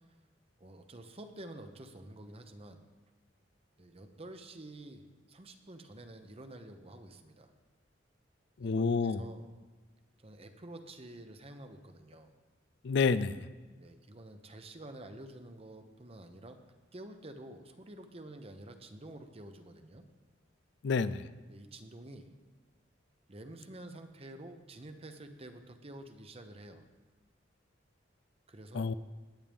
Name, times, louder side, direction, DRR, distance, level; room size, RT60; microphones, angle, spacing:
voice 1, 0.6-2.8 3.8-7.5 8.6-9.4 10.2-12.3 13.7-16.6 16.9-20.0 21.5-22.3 23.3-26.8 28.5-28.9, right 1 dB, 30° right, 7 dB, 0.9 m, -49 dB
voice 2, 8.6-9.2 12.8-13.5 20.8-21.3 28.7-28.9, left 4 dB, 60° left, 14 dB, 0.4 m, -29 dB
19.5 x 9.0 x 3.5 m, 1.3 s
head